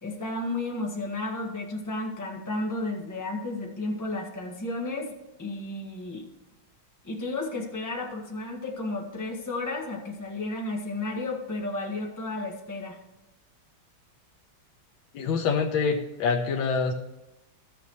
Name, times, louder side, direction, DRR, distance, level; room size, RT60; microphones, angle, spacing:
voice 1, 0.0-6.3 7.0-13.0, left 2 dB, 10° left, -1 dB, 1.4 m, -33 dB
voice 2, 15.1-16.9, left 5 dB, 80° left, 2 dB, 1.5 m, -25 dB
14.0 x 6.9 x 3.1 m, 0.98 s
omnidirectional pair, 2.2 m